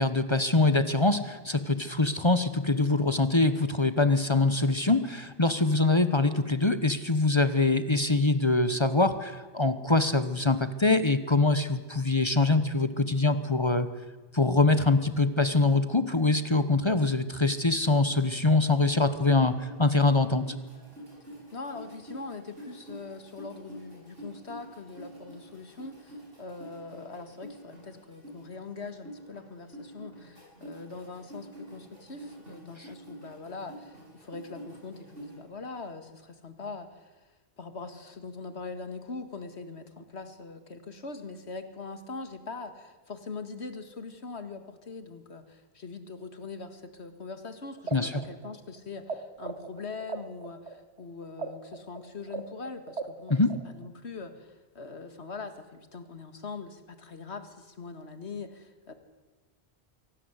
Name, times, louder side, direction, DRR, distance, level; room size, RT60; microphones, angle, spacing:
voice 1, 0.0-13.9 14.3-20.4 47.9-48.1 53.3-53.5, left 2 dB, 25° left, 12 dB, 1.1 m, -24 dB
sound 1, 18.5-35.4, right 1 dB, 60° right, 8.1 m, -47 dB
voice 2, 21.5-37.2 37.6-58.9, left 4 dB, 80° left, 9 dB, 2.2 m, -42 dB
sound 2, 47.8-49.1 49.4-53.9, right 5 dB, 90° right, 2.0 m, -37 dB
24.0 x 17.5 x 8.2 m, 1.2 s
omnidirectional pair, 1.1 m